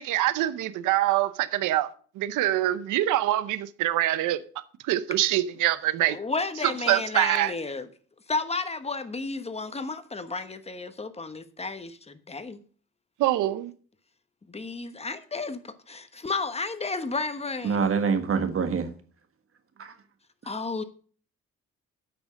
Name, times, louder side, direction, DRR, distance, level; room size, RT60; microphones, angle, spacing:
voice 1, 0.0-1.9 2.2-4.4 4.9-6.2 6.9-7.5 13.2-13.7, right 14 dB, 85° right, 0.7 m, -24 dB
voice 2, 6.1-7.9 8.3-12.6 14.5-17.9 20.4-20.8, left 3 dB, 20° left, 1.1 m, -32 dB
voice 3, 17.6-18.9 19.8-19.9, right 5 dB, 45° right, 1.5 m, -25 dB
8.8 x 6.0 x 6.2 m
cardioid pair, 90°, 30 cm